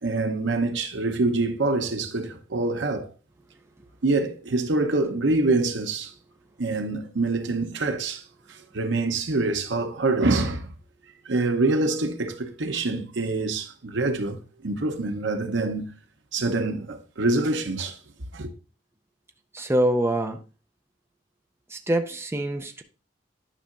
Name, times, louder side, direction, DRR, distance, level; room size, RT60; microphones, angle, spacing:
voice 1, 0.0-3.1 4.0-6.1 6.6-8.2 8.5-10.7 11.3-15.9 16.3-18.0 18.3-18.5, right 2 dB, 80° right, 0.9 m, -25 dB
voice 2, 19.5-20.4 21.7-22.8, right 1 dB, 15° right, 0.5 m, -25 dB
10.0 x 5.6 x 2.5 m
head